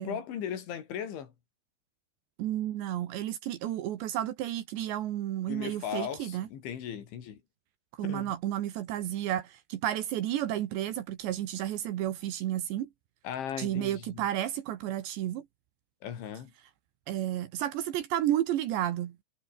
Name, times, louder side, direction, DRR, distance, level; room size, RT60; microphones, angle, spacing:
voice 1, 0.0-1.3 5.5-7.4 8.0-8.3 13.2-14.2 16.0-16.5, left 9 dB, 85° left, 5.5 m, -37 dB
voice 2, 2.4-6.5 8.0-12.9 13.6-15.5 17.1-19.2, right 12 dB, 75° right, 3.7 m, -32 dB
omnidirectional pair, 5.3 m